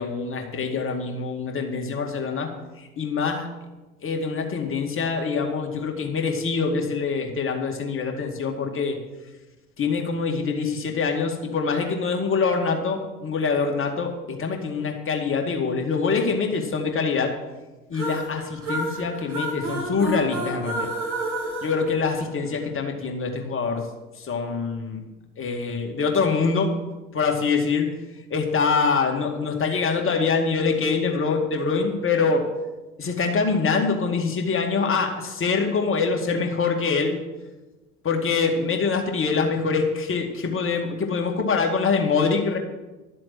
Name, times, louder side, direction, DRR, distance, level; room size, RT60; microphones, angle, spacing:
voice 1, 0.0-2.5 2.8-3.5 4.0-9.0 9.8-17.3 17.9-20.9 21.6-23.9 24.2-25.0 25.4-26.7 27.1-27.9 28.3-32.5 33.0-37.2 38.0-42.6, left 5 dB, 30° left, 2 dB, 2.3 m, -24 dB
sound 1, 17.9-22.7, right 2 dB, 80° right, 2.8 m, -30 dB
12.0 x 7.6 x 7.8 m, 1.1 s
figure-of-eight pair, 70°, 42 cm